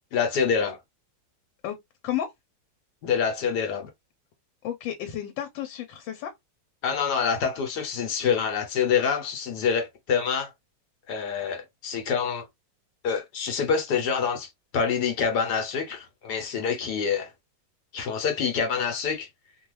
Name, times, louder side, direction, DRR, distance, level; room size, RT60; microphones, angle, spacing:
voice 1, 0.1-0.8 3.0-3.9 6.8-10.5 11.1-12.5 13.0-17.3 17.9-19.3, left 6 dB, 65° left, 1.3 m, -26 dB
voice 2, 4.6-6.3, left 11 dB, 90° left, 1.4 m, -32 dB
3.0 x 2.3 x 3.0 m
omnidirectional pair, 2.0 m